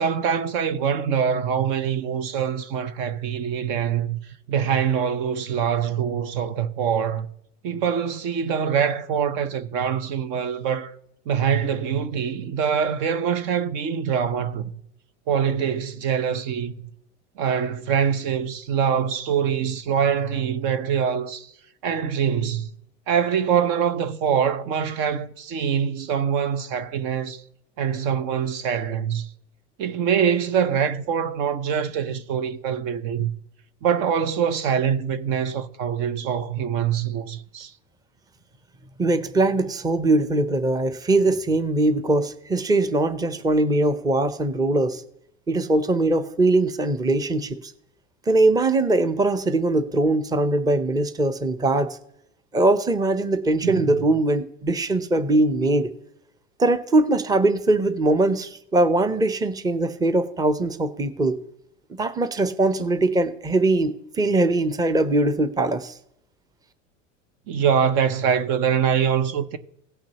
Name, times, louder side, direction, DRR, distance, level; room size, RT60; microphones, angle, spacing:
voice 1, 0.0-4.2 4.5-7.3 7.6-10.9 11.3-14.7 15.3-16.7 17.4-21.5 21.8-22.7 23.1-27.4 27.8-29.3 29.8-33.3 33.8-37.7 53.6-53.9 67.5-69.6, right 7 dB, 60° right, 0.9 m, -24 dB
voice 2, 39.0-45.0 45.5-47.7 48.3-52.0 52.5-55.9 56.6-61.4 61.9-66.0, right 2 dB, 10° right, 0.7 m, -21 dB
17.5 x 5.9 x 2.9 m
hypercardioid pair, 100°, 37 cm